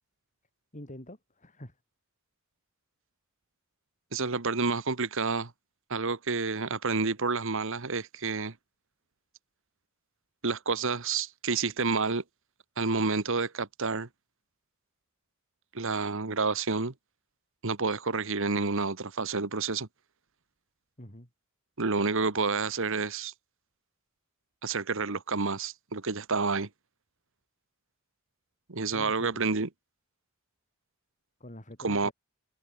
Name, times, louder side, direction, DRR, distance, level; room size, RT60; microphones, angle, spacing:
voice 1, 0.7-1.8 21.0-21.3 28.9-29.4 31.4-32.1, left 1 dB, 35° left, 7.0 m, -45 dB
voice 2, 4.1-5.5 5.9-8.5 10.4-12.2 12.8-14.1 15.7-16.9 17.6-19.9 21.8-23.3 24.6-26.7 28.7-29.7 31.8-32.1, right 4 dB, 65° right, 1.5 m, -29 dB
head